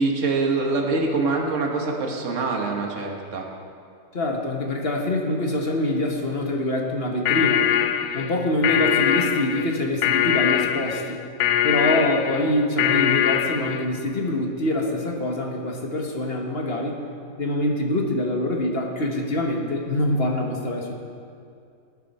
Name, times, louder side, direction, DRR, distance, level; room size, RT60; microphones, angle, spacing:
voice 1, 0.0-3.4, right 3 dB, 55° right, 0 dB, 1.7 m, -24 dB
voice 2, 4.1-7.7 8.1-11.2 11.6-17.0 17.4-20.9, left 1 dB, 40° left, 1 dB, 1.4 m, -25 dB
sound 1, 7.2-13.9, left 10 dB, 80° left, 1.1 m, -22 dB
18.5 x 9.3 x 4.2 m, 2.4 s
omnidirectional pair, 1.7 m